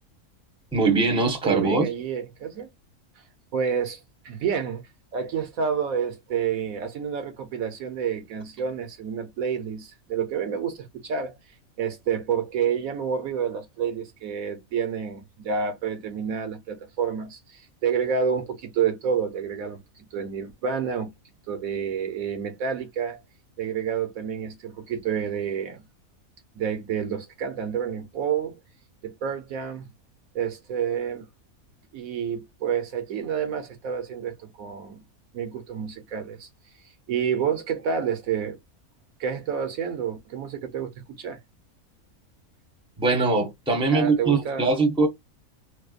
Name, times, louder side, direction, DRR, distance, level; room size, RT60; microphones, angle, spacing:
voice 1, 0.7-1.9 43.0-45.1, right 3 dB, 5° right, 0.9 m, -22 dB
voice 2, 1.4-2.7 3.5-4.8 5.1-11.4 11.8-21.1 21.5-23.2 23.6-25.8 26.5-28.6 29.0-29.9 30.3-31.3 31.9-35.0 35.3-36.5 37.1-38.6 39.2-40.9 41.2-41.4 43.9-44.7, right 7 dB, 75° right, 1.3 m, -29 dB
4.7 x 2.2 x 2.4 m
omnidirectional pair, 1.5 m